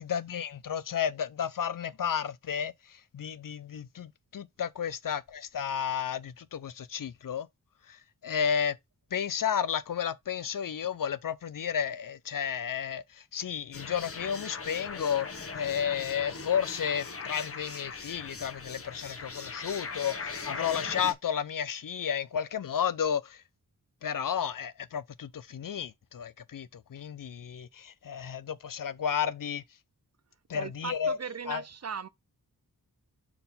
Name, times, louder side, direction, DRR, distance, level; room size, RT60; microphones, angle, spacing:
voice 1, 0.0-7.5 7.9-8.8 9.1-23.4 24.0-29.6 30.5-31.2 31.5-31.6, left 8 dB, 60° left, 0.5 m, -32 dB
sound 1, 13.7-21.1, left 4 dB, 35° left, 0.9 m, -40 dB
voice 2, 30.5-32.1, right 6 dB, 45° right, 0.5 m, -38 dB
4.6 x 3.8 x 5.4 m
wide cardioid pair, 100°, 38 cm